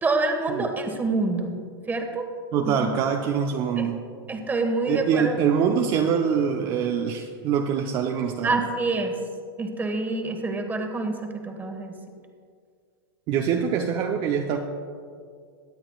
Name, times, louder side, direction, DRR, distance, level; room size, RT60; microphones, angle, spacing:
voice 1, 0.0-1.6 1.9-2.3 2.6-2.9 3.8-3.9 4.3-5.4 8.4-9.2 9.6-11.9, right 3 dB, 15° right, 4 dB, 1.5 m, -27 dB
voice 2, 2.5-4.0 4.9-8.6 13.3-14.6, right 7 dB, 40° right, 2 dB, 0.8 m, -24 dB
22.5 x 8.7 x 2.4 m, 2.2 s
hypercardioid pair, 120°, 13 cm